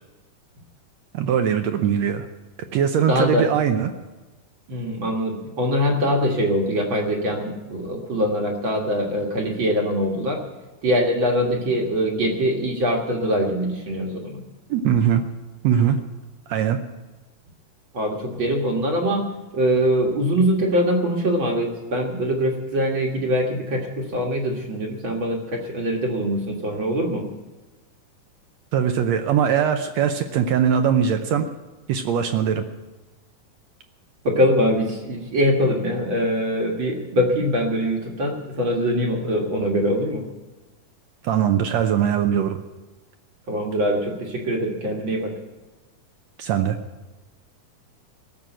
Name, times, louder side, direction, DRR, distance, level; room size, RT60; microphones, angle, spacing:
voice 1, 1.1-2.3 2.7-3.9 14.7-15.2 15.6-16.0 16.5-16.8 28.7-31.5 31.9-32.7 41.2-42.6 46.4-46.8, right 8 dB, 75° right, 7 dB, 1.7 m, -21 dB
voice 2, 3.1-3.5 4.7-10.4 10.8-14.4 17.9-19.2 19.5-27.2 34.2-40.3 43.5-45.3, equal, 45° right, 0 dB, 1.9 m, -23 dB
17.0 x 7.0 x 9.0 m, 1.2 s
omnidirectional pair, 3.7 m